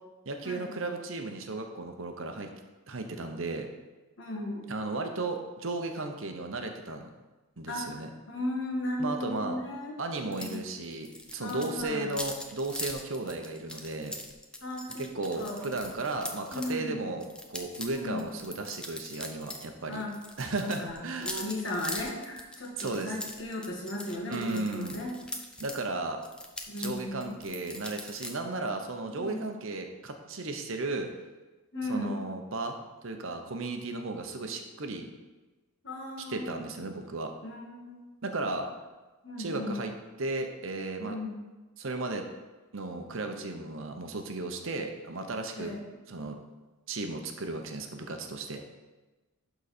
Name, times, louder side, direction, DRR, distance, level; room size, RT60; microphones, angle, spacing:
voice 1, 0.3-2.5 2.9-3.7 4.7-7.1 7.6-8.1 9.0-9.6 10.0-14.2 15.0-20.0 20.4-21.4 22.8-23.1 24.3-25.0 25.6-26.2 26.8-31.1 31.9-32.8 33.0-35.1 36.3-37.3 38.2-38.7 39.4-39.9 40.2-41.2 41.8-42.3 42.7-45.7 46.1-46.4 46.9-48.6, right 2 dB, 65° right, 5 dB, 0.8 m, -35 dB
voice 2, 4.2-4.7 7.7-10.7 11.4-12.1 14.6-15.1 15.4-15.7 16.5-17.0 17.9-18.4 19.9-20.1 20.6-25.1 26.7-27.4 29.1-29.6 31.7-32.2 35.8-36.7 37.4-38.2 39.2-39.8 41.0-41.3 45.5-45.9, left 1 dB, 55° left, -2 dB, 1.8 m, -36 dB
sound 1, 10.3-10.6 10.8-16.7 17.2-19.7 19.9-25.8 26.2-28.3, left 1 dB, 5° left, 0.5 m, -41 dB
11.5 x 4.0 x 4.3 m, 1.2 s
head